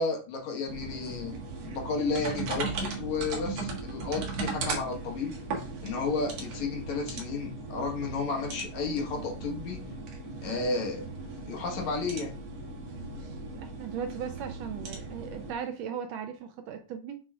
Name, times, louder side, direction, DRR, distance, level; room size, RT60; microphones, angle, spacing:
voice 1, 0.0-1.4 1.7-5.4 5.8-9.8 10.4-11.0 11.5-12.3, left 4 dB, 70° left, 1 dB, 2.7 m, -32 dB
sound 1, 0.7-15.5, right 3 dB, 60° right, 2.5 m, -37 dB
voice 2, 13.5-17.2, right 7 dB, 80° right, 7 dB, 1.6 m, -37 dB
7.5 x 6.1 x 2.4 m, 0.35 s
omnidirectional pair, 3.4 m